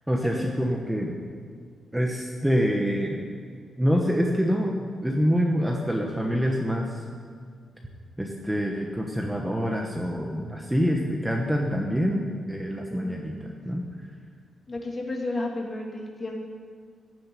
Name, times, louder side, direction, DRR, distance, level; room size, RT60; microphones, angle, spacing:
voice 1, 0.1-1.1 1.9-3.2 3.8-7.0 8.2-13.8, equal, 5° right, 0 dB, 1.2 m, -26 dB
voice 2, 12.9-13.5 14.7-16.4, left 2 dB, 25° left, 0 dB, 2.4 m, -33 dB
15.0 x 7.7 x 9.9 m, 2.1 s
wide cardioid pair, 165°, 0 cm